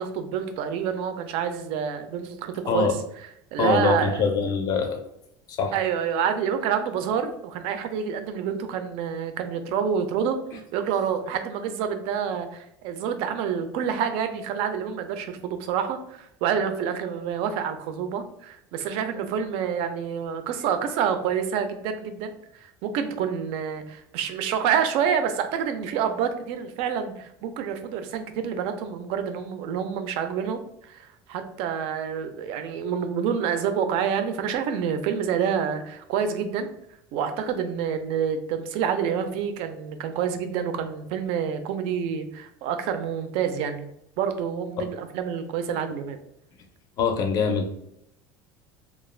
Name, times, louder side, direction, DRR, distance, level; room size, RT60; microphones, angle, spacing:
voice 1, 0.0-2.9 3.5-4.2 5.7-36.7 37.1-46.2, right 7 dB, 60° right, 8 dB, 0.4 m, -28 dB
voice 2, 3.6-5.0 5.5-5.7 44.8-44.9 47.0-47.7, left 5 dB, 35° left, 5 dB, 0.4 m, -24 dB
2.3 x 2.1 x 3.1 m, 0.78 s
cardioid pair, 170°, 11 cm